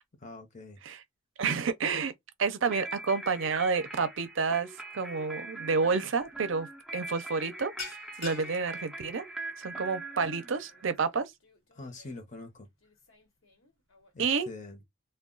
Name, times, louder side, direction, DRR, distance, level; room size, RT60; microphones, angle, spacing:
voice 1, 0.2-0.8 11.7-12.7 14.1-14.8, left 2 dB, 35° left, 0.8 m, -44 dB
voice 2, 1.4-2.1 2.4-4.7 4.9-6.7 6.9-7.7 8.2-9.2 9.6-11.3 14.2-14.5, right 5 dB, 65° right, 0.5 m, -29 dB
sound 1, 2.7-11.0, right 2 dB, ahead, 0.5 m, -42 dB
sound 2, 6.2-6.4 6.7-7.0 7.3-14.2, left 4 dB, 75° left, 1.1 m, -48 dB
2.3 x 2.2 x 3.8 m
head